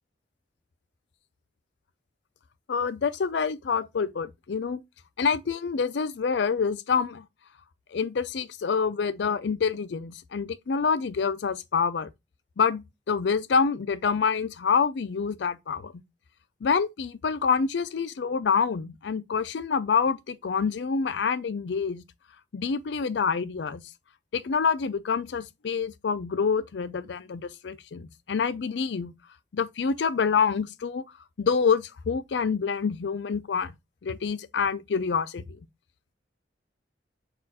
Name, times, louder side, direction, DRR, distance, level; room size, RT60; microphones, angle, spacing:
voice 1, 2.7-4.8 5.2-7.2 7.9-12.1 12.6-15.9 16.6-22.0 22.5-23.8 24.3-29.1 29.5-31.0 31.4-33.7 34.0-35.4, left 5 dB, 70° left, 0.4 m, -27 dB
4.3 x 2.4 x 4.1 m
head